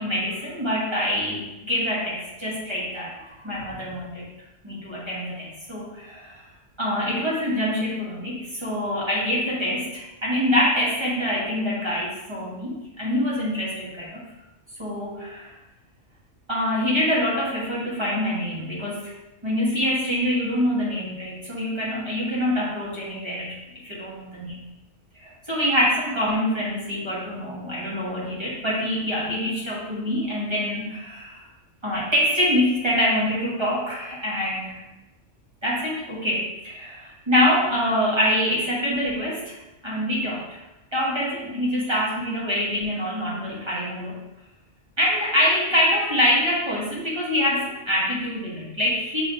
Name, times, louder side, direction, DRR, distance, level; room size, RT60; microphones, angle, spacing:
voice 1, 0.0-4.3 4.6-6.4 6.8-14.2 14.8-15.5 16.5-19.1 19.4-23.5 23.8-24.7 25.2-31.4 31.8-34.8 35.6-39.6 39.8-40.6 40.9-44.2 45.0-49.2, equal, 25° right, -6 dB, 1.1 m, -25 dB
6.4 x 3.1 x 2.6 m, 0.96 s
omnidirectional pair, 1.3 m